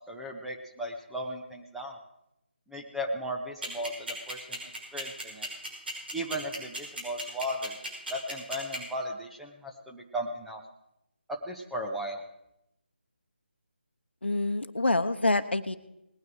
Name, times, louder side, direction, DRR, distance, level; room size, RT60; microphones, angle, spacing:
voice 1, 0.1-2.0 2.7-4.6 4.9-5.5 6.1-7.8 8.1-10.6 11.3-12.2, equal, ahead, -1 dB, 0.8 m, -36 dB
sound 1, 3.6-8.8, right 1 dB, 65° right, 5.7 m, -35 dB
voice 2, 14.2-15.8, left 2 dB, 80° left, 12 dB, 1.0 m, -26 dB
19.5 x 9.4 x 4.8 m, 0.84 s
figure-of-eight pair, 155°, 6 cm